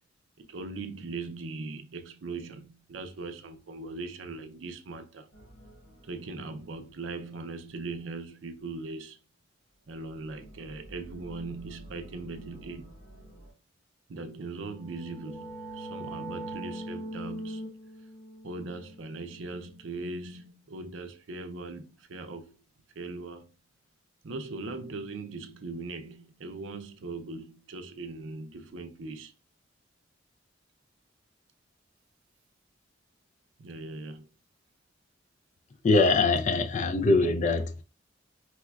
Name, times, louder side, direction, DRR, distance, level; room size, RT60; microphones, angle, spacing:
voice 1, 0.4-5.3 6.0-9.2 9.9-12.9 14.1-17.7 18.4-22.5 23.0-23.5 24.2-29.3 33.6-34.3, right 3 dB, 85° right, 0.5 m, -40 dB
sound 1, 5.3-8.1 9.7-13.5, equal, 75° left, 1.5 m, -51 dB
sound 2, 14.7-20.2, right 1 dB, ahead, 0.8 m, -41 dB
voice 2, 35.8-37.8, left 3 dB, 40° left, 0.3 m, -23 dB
4.6 x 2.1 x 2.3 m
head